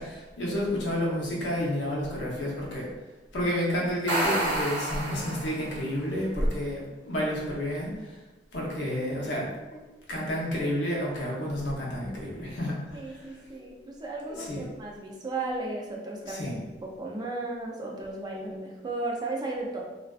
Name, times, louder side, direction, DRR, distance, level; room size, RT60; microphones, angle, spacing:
voice 1, 0.0-2.9 3.3-8.2 8.5-9.8 10.1-13.4 14.3-14.7 16.2-16.6, equal, 85° left, -3 dB, 0.7 m, -30 dB
sound 1, 3.9-5.8, right 1 dB, 80° right, 0.6 m, -29 dB
voice 2, 12.9-16.5 16.8-19.8, right 2 dB, 25° right, -1 dB, 0.4 m, -35 dB
2.4 x 2.2 x 2.3 m, 1.1 s
head